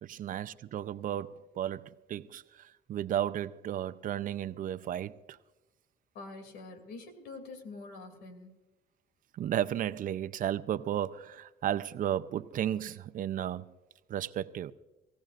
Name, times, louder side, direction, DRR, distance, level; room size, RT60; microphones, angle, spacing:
voice 1, 0.0-5.4 9.3-13.7 14.1-14.7, right 11 dB, 55° right, 0.6 m, -34 dB
voice 2, 6.1-8.6, left 3 dB, 85° left, 2.8 m, -46 dB
24.0 x 16.0 x 2.5 m
cardioid pair, 110°, 17 cm